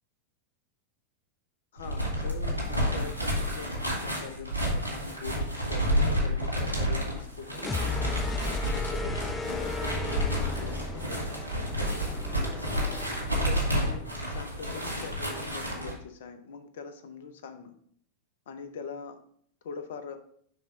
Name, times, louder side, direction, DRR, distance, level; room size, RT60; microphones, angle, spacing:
voice 1, 1.7-7.7 8.4-11.8 13.4-17.7 18.5-19.2 19.6-20.2, left 6 dB, 55° left, 8 dB, 0.7 m, -43 dB
sound 1, 1.8-15.9, equal, 90° left, 1.9 m, -30 dB
sound 2, 7.6-13.4, left 2 dB, 15° left, 0.5 m, -34 dB
6.0 x 3.5 x 4.8 m, 0.63 s
figure-of-eight pair, 90°, 0 cm